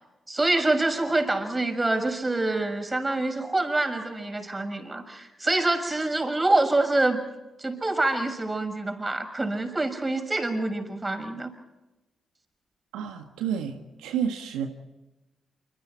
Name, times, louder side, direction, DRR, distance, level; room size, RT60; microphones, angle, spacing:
voice 1, 0.3-7.2 7.6-11.5, right 2 dB, 25° right, 6 dB, 6.5 m, -26 dB
voice 2, 12.9-14.7, right 8 dB, 80° right, 4 dB, 1.5 m, -30 dB
28.0 x 25.5 x 4.5 m, 1.0 s
hypercardioid pair, 40°, 0 cm